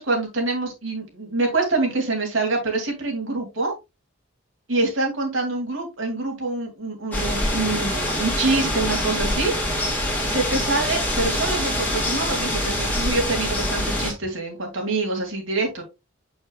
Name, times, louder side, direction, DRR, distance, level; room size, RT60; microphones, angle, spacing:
voice 1, 0.0-3.7 4.7-9.5 10.2-15.8, right 2 dB, 65° right, 1 dB, 2.7 m, -25 dB
sound 1, 7.1-14.1, left 1 dB, 10° left, 2.3 m, -25 dB
7.6 x 6.4 x 2.4 m, 0.23 s
head